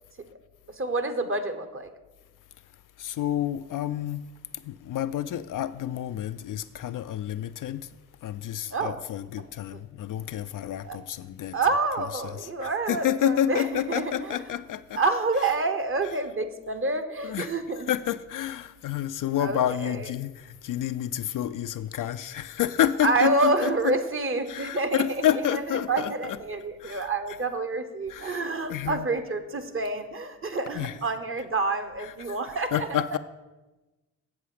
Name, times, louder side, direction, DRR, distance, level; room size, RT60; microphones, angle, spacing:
voice 1, 0.8-1.9 8.7-9.0 9.7-9.8 10.8-11.0 11.5-14.4 15.0-17.9 19.4-20.0 23.0-25.3 25.5-32.9, right 3 dB, 30° right, 1.0 m, -28 dB
voice 2, 3.0-4.2 4.5-7.9 8.2-11.6 12.0-15.0 17.2-24.0 24.5-26.4 26.8-27.1 28.1-28.4 28.7-29.1 30.7-31.0 32.0-32.4 32.7-33.2, left 11 dB, 55° left, 0.5 m, -29 dB
7.5 x 7.1 x 5.0 m
hypercardioid pair, 40°, 39 cm